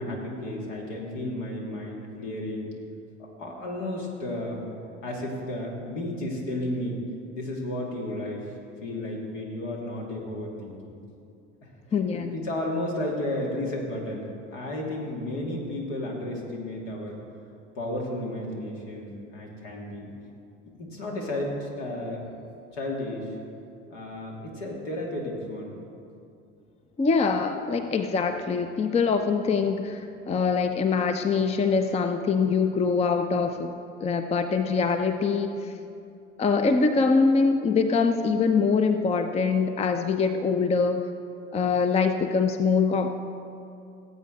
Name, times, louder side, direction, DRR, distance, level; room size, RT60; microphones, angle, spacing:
voice 1, 0.0-2.7 3.2-4.6 5.0-7.0 7.3-8.5 8.8-11.0 12.1-14.3 14.5-17.2 17.7-20.1 20.8-22.2 22.7-23.3 23.9-25.8, left 1 dB, 70° left, -1 dB, 2.4 m, -33 dB
voice 2, 11.9-12.3 27.0-33.7 34.0-35.7 36.4-41.0 41.5-43.1, left 5 dB, 15° left, 8 dB, 0.5 m, -24 dB
17.5 x 8.3 x 3.8 m, 2.6 s
figure-of-eight pair, 65°, 37 cm